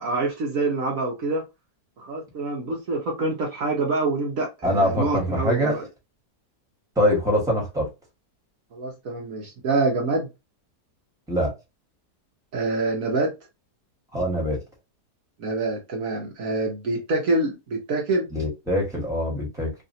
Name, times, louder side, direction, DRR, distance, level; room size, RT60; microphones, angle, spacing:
voice 1, 0.0-1.4 2.0-5.8 8.7-10.3 12.5-13.3 15.4-18.3, right 2 dB, 60° right, 1.2 m, -26 dB
voice 2, 4.6-5.8 6.9-7.9 11.3-11.5 14.1-14.6 18.3-19.7, equal, ahead, 1.4 m, -23 dB
3.3 x 2.5 x 2.7 m
omnidirectional pair, 1.7 m